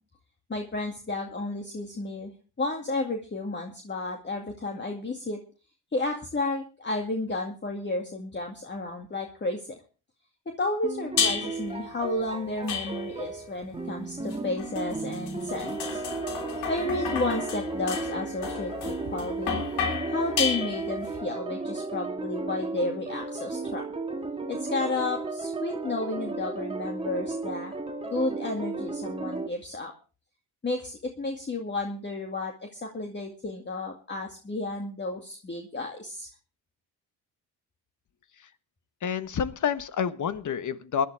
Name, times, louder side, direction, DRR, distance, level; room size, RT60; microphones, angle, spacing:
voice 1, 0.5-2.3 2.6-5.4 5.9-9.7 10.6-16.0 16.7-19.6 20.0-23.8 24.5-27.7 28.0-29.9 30.6-36.3, left 2 dB, 25° left, 2 dB, 2.3 m, -32 dB
sound 1, 10.8-29.5, right 3 dB, 15° right, 1.9 m, -34 dB
sound 2, 11.2-11.7 12.7-13.3 14.3-21.1, left 6 dB, 80° left, 3.4 m, -32 dB
voice 2, 39.0-41.1, left 7 dB, 50° left, 13 dB, 1.3 m, -28 dB
19.5 x 11.5 x 3.5 m, 0.35 s
supercardioid pair, 70°, 40 cm